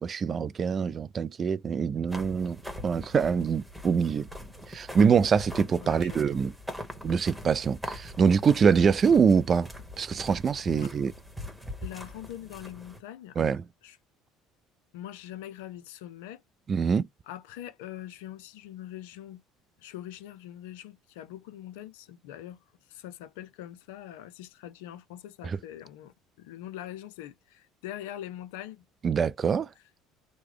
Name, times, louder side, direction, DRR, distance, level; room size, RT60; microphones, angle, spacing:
voice 1, 0.0-4.3 4.7-6.5 7.0-9.7 10.0-11.1 13.4-13.6 16.7-17.1 25.4-25.6 29.0-29.7, right 6 dB, 40° right, 0.3 m, -24 dB
sound 1, 2.1-13.0, equal, 5° right, 1.2 m, -42 dB
voice 2, 5.8-6.5 10.7-10.9 11.8-13.6 13.8-14.0 14.9-16.4 17.3-19.4 19.8-22.6 22.9-28.9, left 12 dB, 75° left, 0.5 m, -43 dB
3.0 x 2.1 x 3.6 m
hypercardioid pair, 70°, 0 cm